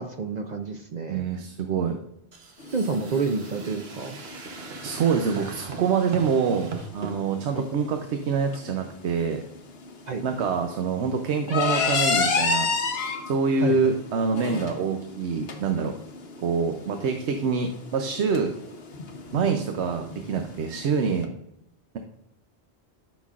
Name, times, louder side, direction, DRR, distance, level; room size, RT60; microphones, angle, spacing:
voice 1, 0.0-1.2 2.7-4.2 7.5-7.6 10.1-10.2 13.6-13.9, right 4 dB, 50° right, 5 dB, 0.6 m, -29 dB
voice 2, 1.1-2.0 4.8-9.4 10.2-12.7 13.3-15.9 16.4-18.5 19.3-21.3, right 5 dB, 85° right, 6 dB, 1.0 m, -25 dB
sound 1, 2.3-7.2, right 4 dB, 65° right, 1.2 m, -40 dB
sound 2, 2.6-21.2, left 4 dB, 65° left, 1.2 m, -32 dB
12.0 x 6.1 x 2.4 m, 0.79 s
omnidirectional pair, 1.1 m